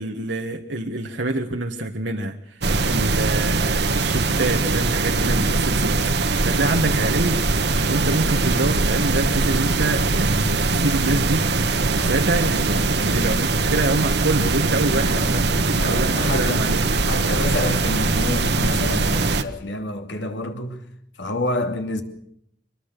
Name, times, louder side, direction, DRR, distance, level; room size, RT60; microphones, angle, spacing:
voice 1, 0.0-2.3 2.8-7.4 7.9-11.5 11.9-15.5 15.8-16.8, right 2 dB, 85° right, 1.7 m, -26 dB
sound 1, 2.6-19.4, right 3 dB, 65° right, 1.4 m, -21 dB
voice 2, 5.1-5.5 12.0-12.3 15.0-15.4 15.7-16.7 17.1-20.8 21.2-22.0, left 1 dB, 85° left, 3.0 m, -28 dB
24.0 x 21.0 x 6.8 m
head